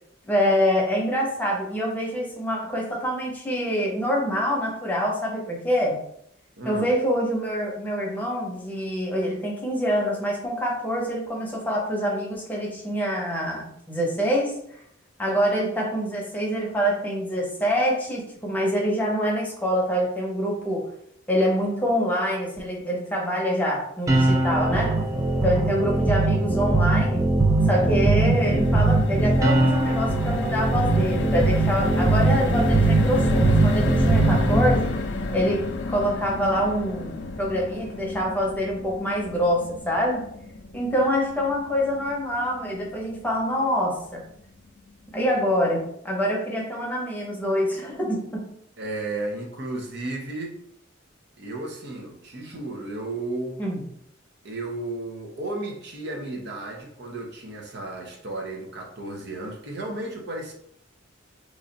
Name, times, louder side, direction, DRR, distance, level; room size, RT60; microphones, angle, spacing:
voice 1, 0.2-6.0 6.6-14.8 15.2-20.9 21.3-25.0 25.4-27.2 27.7-34.9 35.3-40.3 40.7-44.2 45.1-48.5 53.6-53.8, equal, 10° left, -2 dB, 0.8 m, -25 dB
voice 2, 6.6-6.9 48.8-50.6 51.4-53.6 54.4-60.5, right 2 dB, 60° right, 1 dB, 0.8 m, -33 dB
sound 1, 24.1-34.7, right 2 dB, 15° right, 0.4 m, -21 dB
sound 2, 27.6-43.9 44.3-44.4 44.7-44.9, left 2 dB, 60° left, 0.4 m, -32 dB
3.1 x 2.5 x 3.9 m, 0.69 s
head